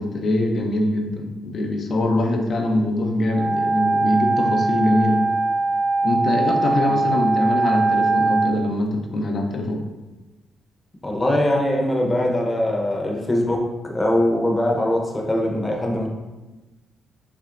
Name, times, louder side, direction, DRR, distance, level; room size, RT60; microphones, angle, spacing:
voice 1, 0.0-5.2 6.0-9.8, left 1 dB, 55° left, 2 dB, 0.8 m, -23 dB
Wind instrument woodwind instrument, 3.3-8.6, right 3 dB, 50° right, 0.3 m, -21 dB
voice 2, 11.0-16.1, left 1 dB, 25° left, 0 dB, 0.9 m, -22 dB
6.0 x 3.2 x 2.6 m, 1.1 s
cardioid pair, 75°, 0 cm